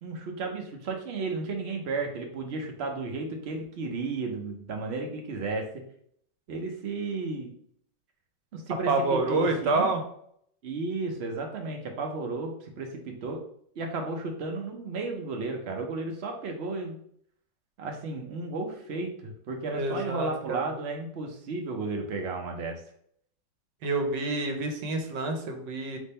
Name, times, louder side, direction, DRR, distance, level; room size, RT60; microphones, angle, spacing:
voice 1, 0.0-5.8 6.5-7.5 8.5-9.9 10.6-13.4 13.8-17.0 17.8-22.8, right 3 dB, 55° right, 3 dB, 0.7 m, -33 dB
voice 2, 8.9-10.0 19.7-20.7 23.8-26.0, right 3 dB, 80° right, 5 dB, 1.4 m, -28 dB
3.6 x 3.0 x 4.2 m, 0.66 s
omnidirectional pair, 1.9 m